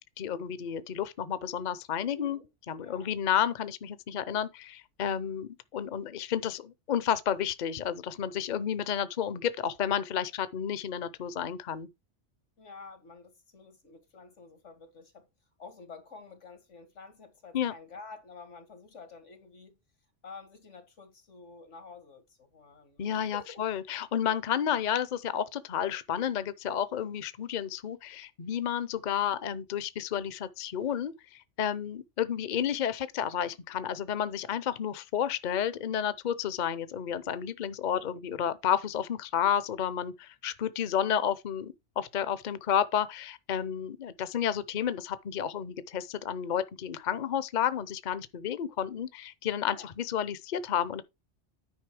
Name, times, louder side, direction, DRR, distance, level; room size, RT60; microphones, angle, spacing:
voice 1, 0.2-2.4 2.7-11.9 17.5-17.7 23.0-51.0, left 9 dB, 45° left, 0.7 m, -31 dB
voice 2, 2.1-2.5 2.8-3.1 12.6-15.3 15.6-19.8 20.2-23.6 37.8-38.2 49.6-49.9, left 4 dB, 90° left, 2.4 m, -49 dB
9.6 x 5.2 x 4.8 m
omnidirectional pair, 1.2 m